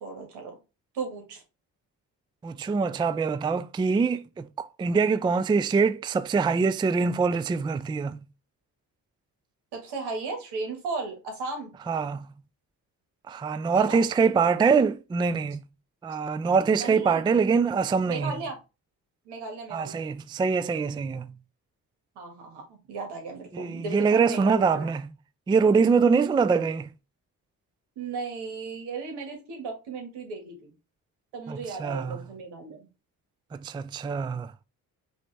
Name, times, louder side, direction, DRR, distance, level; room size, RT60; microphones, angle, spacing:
voice 1, 0.0-0.5 0.9-1.4 9.7-11.7 13.7-14.0 16.7-17.3 18.1-18.6 19.3-20.0 22.2-24.9 28.0-30.7 31.3-32.9, right 4 dB, 80° right, 1.8 m, -35 dB
voice 2, 2.4-8.2 11.9-12.3 13.3-15.6 16.0-18.4 19.7-21.3 23.5-25.1 25.5-26.9 31.5-32.2 33.5-34.5, right 5 dB, 15° right, 0.3 m, -24 dB
5.2 x 3.0 x 3.3 m
supercardioid pair, 55°, 40 cm